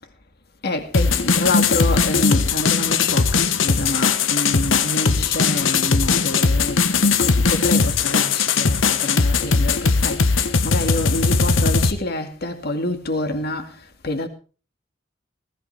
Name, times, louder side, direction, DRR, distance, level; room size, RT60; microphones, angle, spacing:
voice 1, 0.6-13.7 14.0-14.3, left 2 dB, 55° left, 2.2 m, -27 dB
sound 1, 0.9-11.9, left 4 dB, 90° left, 1.2 m, -19 dB
19.0 x 14.0 x 3.5 m
head